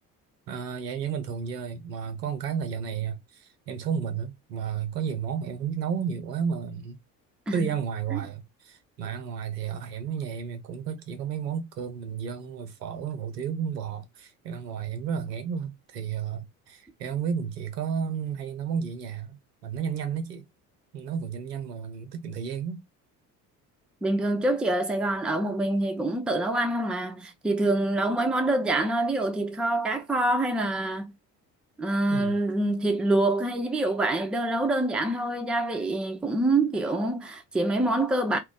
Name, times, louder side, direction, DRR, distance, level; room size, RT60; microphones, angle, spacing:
voice 1, 0.5-7.0 7.5-20.5 20.9-22.8 32.1-32.3, right 7 dB, 85° right, 0.6 m, -32 dB
voice 2, 24.0-31.1 31.8-38.4, right 2 dB, ahead, 0.4 m, -26 dB
2.1 x 2.1 x 3.7 m
figure-of-eight pair, 55°, 47 cm